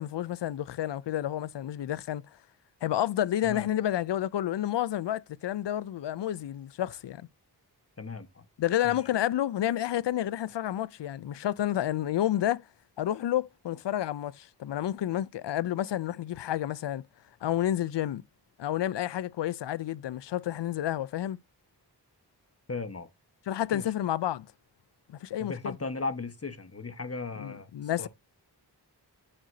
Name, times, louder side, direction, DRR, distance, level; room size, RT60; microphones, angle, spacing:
voice 1, 0.0-2.2 2.8-7.3 8.6-12.6 13.0-17.0 17.4-18.2 18.6-21.4 23.5-24.5 25.1-25.8 27.4-28.1, left 12 dB, 85° left, 0.5 m, -30 dB
voice 2, 8.0-8.4 8.8-9.0 22.7-23.1 23.7-23.8 25.4-27.7 28.0-28.1, left 3 dB, 35° left, 1.3 m, -36 dB
8.0 x 7.4 x 2.7 m
cardioid pair, 50°, 42 cm